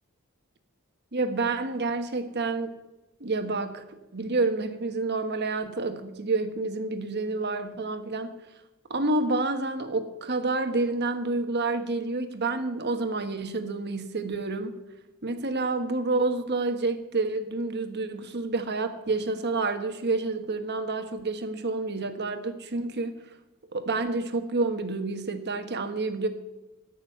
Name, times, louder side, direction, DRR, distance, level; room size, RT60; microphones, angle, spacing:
voice 1, 1.1-2.7 3.2-3.8 4.1-8.3 8.9-14.8 15.2-23.1 23.7-26.3, right 3 dB, 50° right, 7 dB, 1.4 m, -29 dB
15.0 x 6.4 x 9.8 m, 0.99 s
head